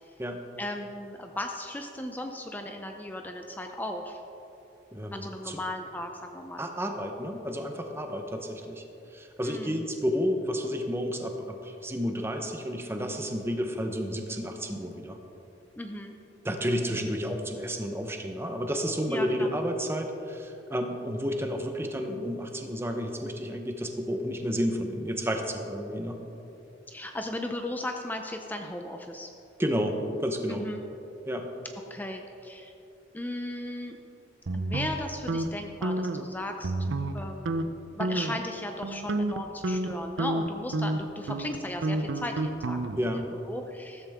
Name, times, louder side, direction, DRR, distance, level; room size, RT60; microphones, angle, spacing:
voice 1, 0.6-4.2 5.1-6.7 9.4-9.8 15.8-16.2 19.1-19.5 26.9-29.3 30.5-30.8 31.9-32.7 33.1-34.0 34.5-36.7 37.1-44.1, left 1 dB, 10° left, 4 dB, 0.6 m, -36 dB
voice 2, 4.9-5.6 6.6-8.8 9.1-15.2 16.4-26.2 29.6-30.7 31.3-31.5 43.0-43.3, equal, 15° right, 4 dB, 1.0 m, -31 dB
sound 1, 34.5-35.5 35.8-36.2 36.6-37.2 37.5-37.7 38.0-38.4 38.8-43.2, right 2 dB, 90° right, 0.6 m, -30 dB
14.5 x 13.0 x 3.6 m, 2.9 s
head